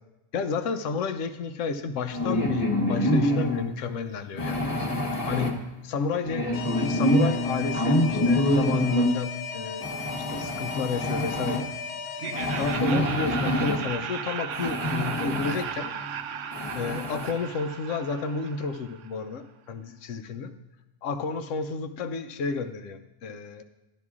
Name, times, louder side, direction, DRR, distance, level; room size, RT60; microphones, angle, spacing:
voice 1, 0.3-6.5 6.8-9.9 10.3-11.7 12.6-15.9 16.7-20.5 21.0-23.6, left 5 dB, 65° left, 9 dB, 0.9 m, -31 dB
sound 1, 2.1-3.6 4.4-5.5 6.2-9.1 9.8-11.6 12.3-13.8 14.5-15.6 16.1-16.2 16.5-17.3, left 1 dB, 25° left, 1.1 m, -26 dB
Alarm, 6.5-12.7, left 5 dB, 90° left, 1.2 m, -36 dB
Laughter, 12.2-19.1, right 8 dB, 65° right, 0.8 m, -36 dB
12.5 x 11.0 x 2.4 m, 1.0 s
omnidirectional pair, 1.6 m